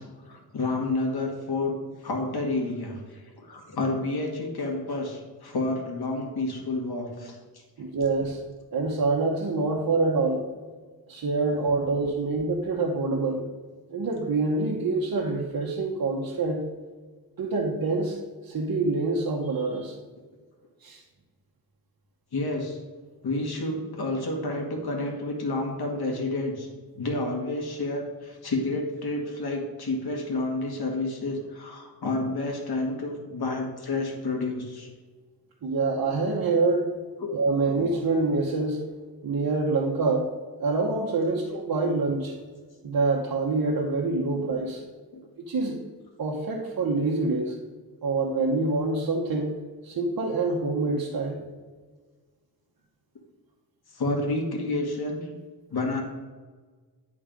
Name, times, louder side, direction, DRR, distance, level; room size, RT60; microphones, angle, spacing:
voice 1, 0.2-1.7 2.0-7.6 22.3-22.8 23.2-26.7 26.9-34.9 37.2-37.3 44.3-44.4 45.1-45.2 53.9-55.3 55.7-56.0, left 2 dB, 85° left, 1 dB, 1.7 m, -30 dB
voice 2, 7.8-8.4 8.7-10.5 11.1-13.4 13.9-16.7 17.4-18.2 18.4-20.0 20.8-21.0 35.6-36.9 37.3-38.8 39.2-40.3 40.6-42.4 42.8-44.8 45.4-45.8 46.2-47.6 48.0-49.6 49.8-51.4, right 3 dB, 65° right, -2 dB, 1.0 m, -26 dB
10.5 x 3.9 x 5.1 m, 1.4 s
wide cardioid pair, 120°, 37 cm